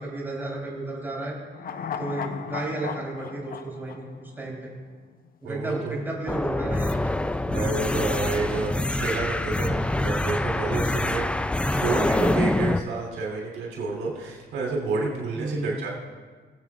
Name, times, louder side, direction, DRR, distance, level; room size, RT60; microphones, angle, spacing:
voice 1, 0.0-1.4 2.0-4.7 5.4-7.2 9.9-10.0 11.6-11.9 15.3-15.8, right 2 dB, 10° right, -4 dB, 3.8 m, -33 dB
sound 1, 1.5-4.9 5.2-5.3, left 7 dB, 45° left, 0.6 m, -36 dB
voice 2, 5.4-6.0 7.5-11.3 11.7-15.9, right 3 dB, 85° right, -2 dB, 3.2 m, -29 dB
sound 2, 6.3-12.8, left 1 dB, 5° left, 0.3 m, -25 dB
24.5 x 8.4 x 2.4 m, 1.5 s
cardioid pair, 90°, 20 cm